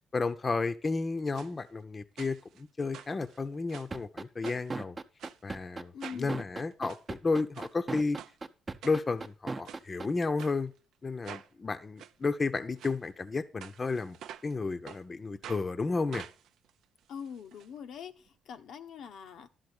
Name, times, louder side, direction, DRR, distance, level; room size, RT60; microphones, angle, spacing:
voice 1, 0.1-5.0 5.4-8.2 8.8-10.7 11.0-14.2 14.4-16.2, left 3 dB, 30° left, 0.7 m, -32 dB
sound 1, 1.3-1.5 2.2-2.6 2.9-4.0 4.4-4.8 5.2-5.4 6.0-6.3 6.7-7.0 7.5-7.7 8.2-8.3 8.8-9.3 9.6-9.8 10.4-10.6 11.2-11.5 12.0-12.1 12.8-13.0 13.6-14.5 14.9-15.0 15.4-15.6 16.1-17.7 17.9-18.0 18.3-18.4, right 10 dB, 80° right, 0.6 m, -47 dB
sound 2, 3.9-10.1, right 3 dB, 25° right, 0.8 m, -37 dB
voice 2, 5.9-6.4 17.1-18.1 18.5-19.5, left 7 dB, 75° left, 0.8 m, -43 dB
12.0 x 4.0 x 8.0 m
cardioid pair, 90°, 0 cm